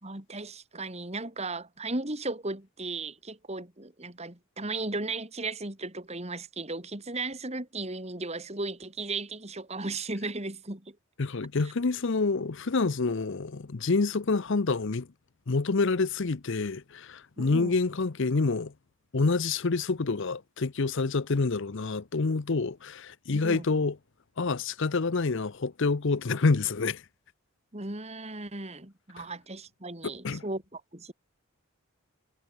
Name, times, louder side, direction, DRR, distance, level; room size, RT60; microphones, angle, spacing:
voice 1, 0.0-11.0 17.4-17.7 23.3-23.6 27.7-31.1, right 2 dB, 30° right, 2.8 m, -36 dB
voice 2, 11.2-15.1 15.5-18.7 19.1-24.0 24.4-27.0 29.2-29.3 30.2-30.4, left 3 dB, 55° left, 0.7 m, -27 dB
head